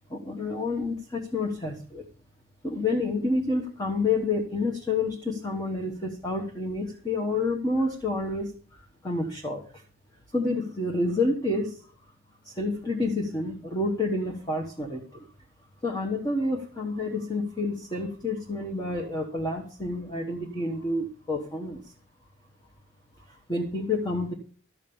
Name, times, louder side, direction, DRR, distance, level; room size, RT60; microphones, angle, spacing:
voice 1, 0.1-2.0 2.6-9.8 10.3-11.9 12.4-15.3 15.8-21.8 23.3-24.3, left 2 dB, 20° left, 0 dB, 1.2 m, -29 dB
13.5 x 5.3 x 7.0 m, 0.44 s
head